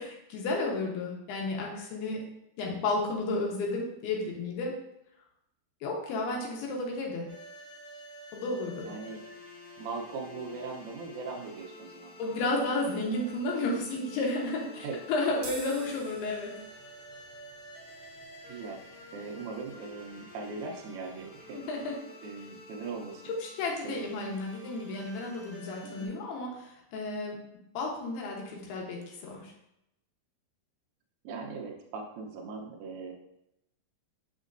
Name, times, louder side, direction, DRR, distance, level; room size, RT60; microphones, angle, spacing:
voice 1, 0.0-2.3 2.6-4.8 5.8-7.3 8.3-8.9 12.2-16.6 21.5-22.0 23.4-27.4 27.7-29.5, left 2 dB, 75° left, -1 dB, 3.0 m, -32 dB
sound 1, 7.3-26.1, left 1 dB, 55° left, 2.7 m, -49 dB
voice 2, 8.8-9.2 9.8-12.2 12.7-13.1 14.8-15.0 18.5-18.8 19.1-21.6 22.2-23.2 23.8-24.2 25.8-26.1 31.2-33.1, right 4 dB, 80° right, 0 dB, 1.7 m, -40 dB
sound 2, 15.3-21.9, right 3 dB, 60° right, 2.0 m, -50 dB
6.3 x 6.2 x 2.6 m, 0.84 s
omnidirectional pair, 4.7 m